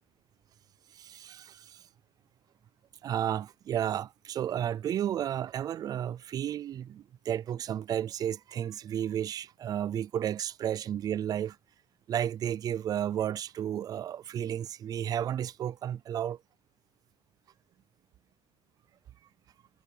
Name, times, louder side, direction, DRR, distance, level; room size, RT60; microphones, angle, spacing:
voice 1, 0.9-1.8 3.0-11.6 12.1-16.4, right 10 dB, 30° right, 0.4 m, -32 dB
cardioid pair, 170°, 13 cm